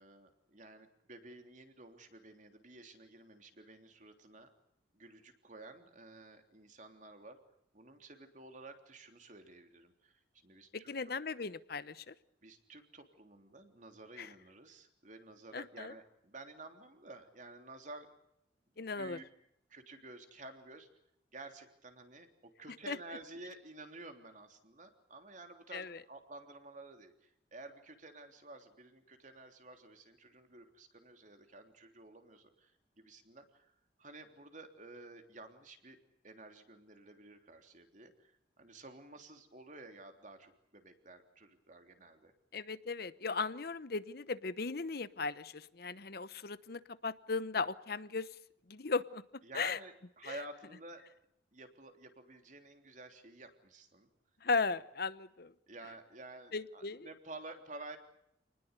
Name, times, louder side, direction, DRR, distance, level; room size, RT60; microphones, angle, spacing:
voice 1, 0.0-4.5 4.9-7.4 7.7-10.1 10.4-10.9 12.4-18.1 19.0-19.2 19.7-20.9 21.3-27.1 27.5-32.7 33.0-33.7 34.0-36.0 36.2-38.3 38.6-42.3 49.4-51.0 51.5-54.1 55.7-58.0, right 2 dB, 45° right, 6 dB, 3.3 m, -52 dB
voice 2, 10.7-12.1 14.2-14.3 15.5-15.9 18.8-19.2 22.9-23.0 25.7-26.0 42.5-48.3 48.7-49.2 49.5-49.8 50.2-50.4 54.4-55.5 56.5-57.1, left 4 dB, 55° left, 15 dB, 0.9 m, -37 dB
28.0 x 20.0 x 8.2 m, 0.75 s
head